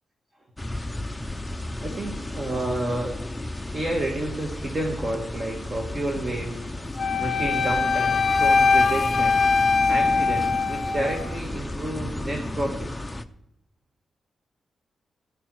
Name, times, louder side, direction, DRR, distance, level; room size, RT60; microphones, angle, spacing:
sound 1, 0.6-13.2, left 1 dB, 10° left, 0.6 m, -34 dB
voice 1, 1.8-3.2 3.7-6.9 7.2-9.4 9.9-12.9, right 1 dB, 25° right, 3 dB, 1.4 m, -30 dB
Wind instrument woodwind instrument, 7.0-11.3, left 4 dB, 40° left, 0.9 m, -21 dB
16.0 x 10.0 x 4.7 m, 0.78 s
wide cardioid pair, 155°, 0 cm